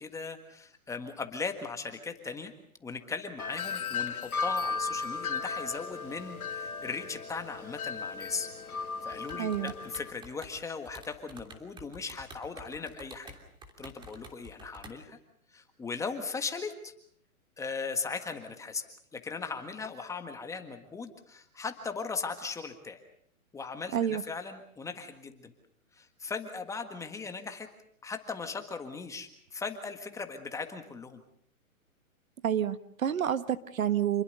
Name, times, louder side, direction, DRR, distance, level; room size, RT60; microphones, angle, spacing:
voice 1, 0.0-2.5 2.8-8.5 9.0-13.3 13.8-15.2 15.5-16.9 17.6-18.8 19.1-23.0 23.5-24.0 24.3-25.5 25.9-27.7 28.0-31.2, left 4 dB, 5° left, 7 dB, 1.6 m, -38 dB
Wind chime, 3.4-10.1, left 5 dB, 85° left, 2.1 m, -36 dB
sound 1, 9.1-10.6 10.8-14.9, right 1 dB, 10° right, 3.0 m, -49 dB
voice 2, 9.4-9.7 23.9-24.2 32.4-34.2, right 9 dB, 70° right, 12 dB, 1.7 m, -29 dB
28.5 x 21.0 x 6.6 m, 0.64 s
hypercardioid pair, 150°, 43 cm